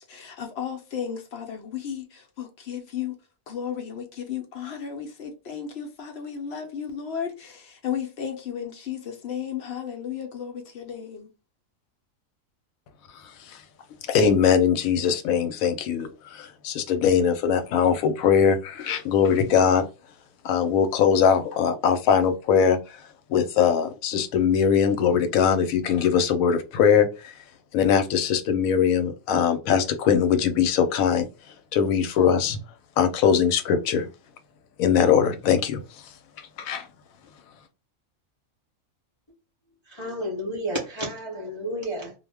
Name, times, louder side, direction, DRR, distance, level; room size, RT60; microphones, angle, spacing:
voice 1, 0.1-3.1 3.5-11.3, left 8 dB, 60° left, 0.8 m, -34 dB
voice 2, 14.1-19.8 20.4-23.0 23.3-27.3 27.7-31.3 31.7-32.6 33.0-34.1 34.8-35.8 36.4-36.9, left 7 dB, 85° left, 1.0 m, -21 dB
voice 3, 39.9-42.1, equal, 30° left, 0.5 m, -31 dB
2.4 x 2.1 x 3.3 m
omnidirectional pair, 1.4 m